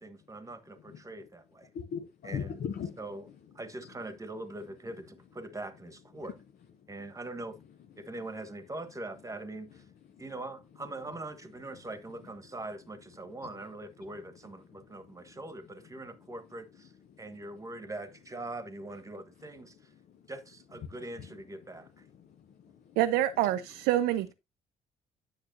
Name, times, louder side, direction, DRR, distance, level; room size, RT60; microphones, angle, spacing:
voice 1, 0.0-1.7 2.2-2.6 3.0-3.3 3.5-6.3 6.9-7.6 8.0-9.8 10.2-16.9 17.2-19.9 20.3-22.0, right 2 dB, 15° right, 1.3 m, -42 dB
voice 2, 1.7-3.0 10.1-10.2 11.7-11.8 14.0-14.1 14.9-15.3 17.1-17.2 20.1-20.3 20.8-20.9 21.2-21.4 22.1-23.0 23.4-23.5, left 7 dB, 55° left, 0.9 m, -40 dB
voice 3, 23.0-24.3, right 13 dB, 65° right, 0.5 m, -26 dB
10.0 x 6.9 x 2.7 m
hypercardioid pair, 50°, 18 cm